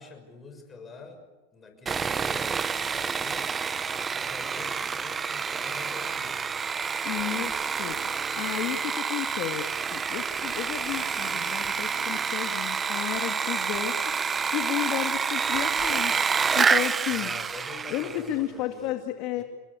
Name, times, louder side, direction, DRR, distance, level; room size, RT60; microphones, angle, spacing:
voice 1, 0.0-3.5 3.9-6.7 17.1-19.0 19.4-19.5, left 3 dB, 15° left, 4 dB, 6.4 m, -46 dB
Sawing, 1.9-18.3, right 6 dB, 20° right, 0.7 m, -28 dB
voice 2, 7.0-8.0 8.3-14.0 14.5-16.1 16.6-17.3 17.9-19.4, left 13 dB, 50° left, 5 dB, 2.2 m, -32 dB
sound 1, 7.5-18.0, right 7 dB, 60° right, 5.2 m, -58 dB
28.5 x 21.0 x 8.4 m, 1.2 s
supercardioid pair, 140°, 0 cm